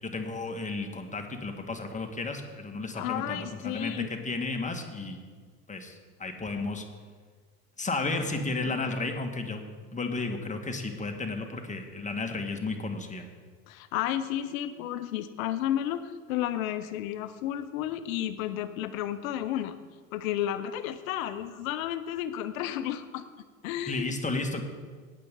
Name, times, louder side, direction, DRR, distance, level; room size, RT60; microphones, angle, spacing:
voice 1, 0.0-5.2 5.7-6.8 7.8-9.6 9.9-13.3 23.9-24.6, left 3 dB, 15° left, 4 dB, 1.8 m, -33 dB
voice 2, 2.9-4.1 8.6-8.7 13.7-19.8 20.1-23.2 23.6-24.2, left 11 dB, 70° left, 12 dB, 0.9 m, -32 dB
18.0 x 7.6 x 3.8 m, 1.5 s
hypercardioid pair, 65°, 42 cm